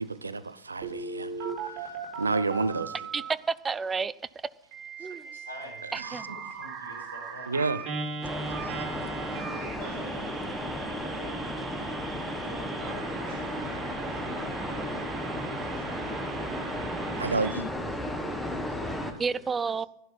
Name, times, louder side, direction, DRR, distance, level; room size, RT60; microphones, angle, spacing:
voice 1, 0.0-1.9 2.2-2.9 6.1-6.2 7.5-7.8 17.2-17.7, right 3 dB, 80° right, 0.6 m, -30 dB
Telephone, 0.8-3.3 4.7-17.5, right 5 dB, 35° right, 4.4 m, -39 dB
voice 2, 3.1-4.1 5.0-5.3 5.9-6.2 19.2-19.9, right 5 dB, 15° right, 0.4 m, -30 dB
voice 3, 5.0-7.6, equal, 80° left, 5.5 m, -47 dB
sound 1, 8.2-19.1, left 1 dB, ahead, 1.4 m, -34 dB
voice 4, 9.4-11.6 12.1-16.1 17.0-19.7, left 1 dB, 50° left, 7.2 m, -49 dB
13.0 x 11.5 x 5.6 m
figure-of-eight pair, 90°, 0 cm